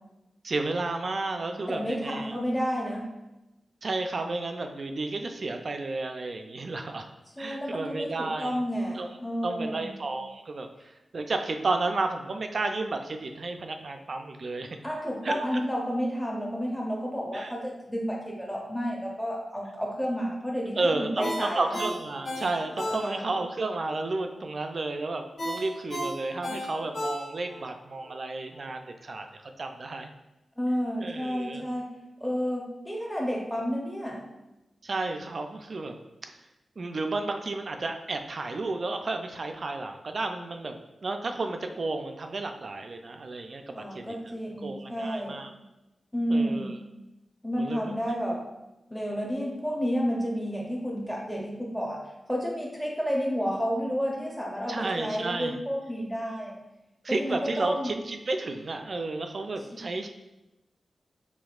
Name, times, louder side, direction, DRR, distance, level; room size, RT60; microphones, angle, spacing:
voice 1, 0.4-2.3 3.8-7.1 7.4-8.6 9.0-9.1 9.4-14.8 15.2-15.4 17.3-17.5 20.8-29.3 29.6-30.1 31.0-31.7 34.8-36.0 36.8-44.2 44.6-45.5 46.3-46.7 47.6-47.9 54.7-55.6 57.0-60.1, right 3 dB, 50° right, 5 dB, 0.4 m, -32 dB
voice 2, 1.7-3.1 7.4-10.0 14.8-21.8 22.9-23.4 30.6-31.9 32.2-34.2 43.7-45.4 46.1-46.8 47.4-48.4 48.9-52.0 52.3-56.6 57.1-57.9 59.7-59.8, equal, 5° left, -2 dB, 0.6 m, -31 dB
Ringtone, 21.2-23.5 23.8-24.0 25.4-27.6 28.0-28.1, left 1 dB, 60° left, 1.2 m, -33 dB
5.1 x 3.5 x 2.4 m, 0.99 s
wide cardioid pair, 130°, 0 cm